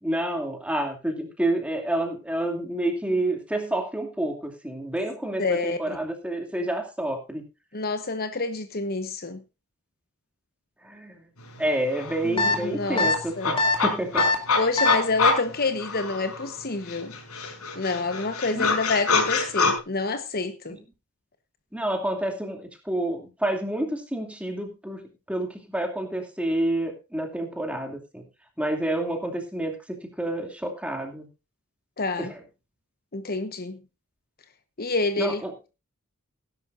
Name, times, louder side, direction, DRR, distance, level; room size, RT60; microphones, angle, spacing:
voice 1, 0.0-7.4 10.8-11.3 11.6-14.3 18.5-18.7 20.7-20.8 21.7-28.2 28.6-31.3 32.2-32.4 35.2-35.5, right 1 dB, 5° right, 2.6 m, -29 dB
voice 2, 5.4-6.0 7.7-9.4 12.2-13.1 13.4-13.5 14.6-17.1 17.8-20.8 32.0-32.3 33.1-33.8 34.8-35.4, left 3 dB, 45° left, 1.1 m, -28 dB
sound 1, 11.6-11.7 11.9-16.5 16.9-19.8, left 4 dB, 85° left, 5.0 m, -26 dB
sound 2, 12.4-12.6 13.0-13.1 13.6-13.8 14.2-14.3 14.8-14.9, left 3 dB, 25° left, 2.7 m, -21 dB
18.5 x 11.0 x 2.6 m
head